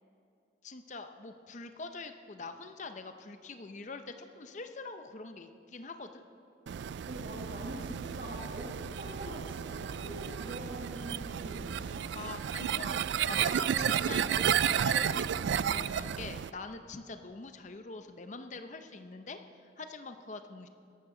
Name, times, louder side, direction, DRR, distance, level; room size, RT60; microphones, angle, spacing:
voice 1, 0.6-6.2 12.1-20.7, left 3 dB, 40° left, 7 dB, 0.6 m, -44 dB
sound 1, 6.7-16.5, right 8 dB, 75° right, 0.3 m, -32 dB
voice 2, 7.1-12.3, equal, 50° right, -4 dB, 1.6 m, -44 dB
21.5 x 12.0 x 3.8 m, 2.6 s
head